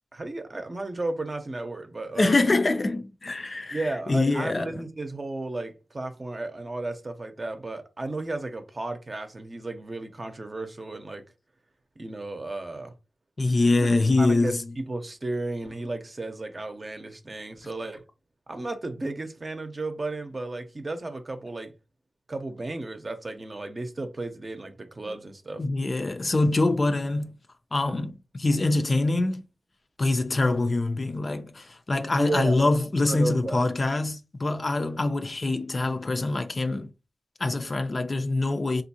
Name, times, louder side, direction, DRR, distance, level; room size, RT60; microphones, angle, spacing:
voice 1, 0.1-2.4 3.7-11.2 12.0-12.9 14.2-18.0 18.5-21.7 22.3-25.6 32.1-32.8 33.0-33.6, right 2 dB, 40° right, 0.7 m, -33 dB
voice 2, 2.1-4.8 13.4-14.7 25.6-27.4 27.7-29.4 30.0-36.9 37.4-38.8, left 2 dB, 45° left, 0.4 m, -24 dB
3.4 x 2.5 x 2.7 m
cardioid pair, 60°, 0 cm